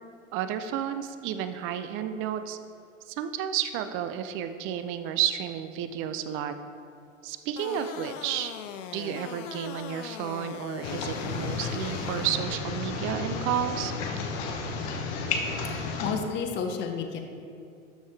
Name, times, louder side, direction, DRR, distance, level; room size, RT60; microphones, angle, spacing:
voice 1, 0.3-2.6 3.1-6.5 7.2-8.5 8.9-13.9, right 10 dB, 30° right, 10 dB, 0.4 m, -31 dB
sound 1, 7.6-12.4, left 9 dB, 65° left, 0.6 m, -40 dB
sound 2, 10.8-16.1, left 4 dB, 50° left, 1.1 m, -32 dB
voice 2, 16.0-17.2, left 6 dB, 30° left, 5 dB, 0.7 m, -30 dB
12.5 x 5.4 x 3.3 m, 2.4 s
hypercardioid pair, 95°, 40 cm